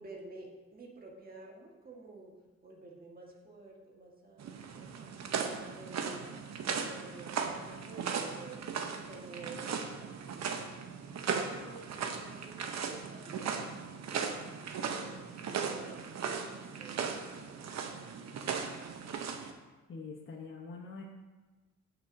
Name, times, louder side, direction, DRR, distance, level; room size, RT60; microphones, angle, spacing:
voice 1, 0.0-2.3 2.6-10.9 11.5-18.5, right 3 dB, 30° right, -2 dB, 1.6 m, -52 dB
sound 1, 4.4-19.5, right 6 dB, 65° right, 0.8 m, -37 dB
voice 2, 19.9-21.0, left 4 dB, 45° left, -1 dB, 1.0 m, -44 dB
15.0 x 6.1 x 2.7 m, 1.3 s
wide cardioid pair, 145°, 29 cm